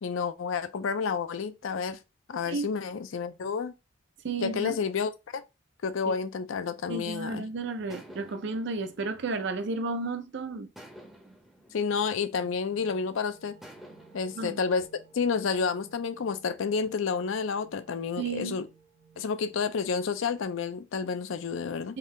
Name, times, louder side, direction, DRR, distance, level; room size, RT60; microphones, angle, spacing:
voice 1, 0.0-2.0 2.3-3.7 4.4-5.4 5.8-7.4 11.7-13.6 14.1-14.9 15.1-18.7 19.2-22.0, left 5 dB, 70° left, 0.4 m, -30 dB
voice 2, 4.2-4.8 6.1-6.2 6.9-10.7 14.4-14.6 18.2-18.6 19.2-19.3, right 3 dB, 55° right, 0.5 m, -33 dB
sound 1, 6.7-7.3 7.9-10.2 10.8-13.0 13.6-15.9, equal, ahead, 0.6 m, -53 dB
sound 2, 11.8-20.7, right 6 dB, 85° right, 1.1 m, -59 dB
3.8 x 2.7 x 3.1 m
head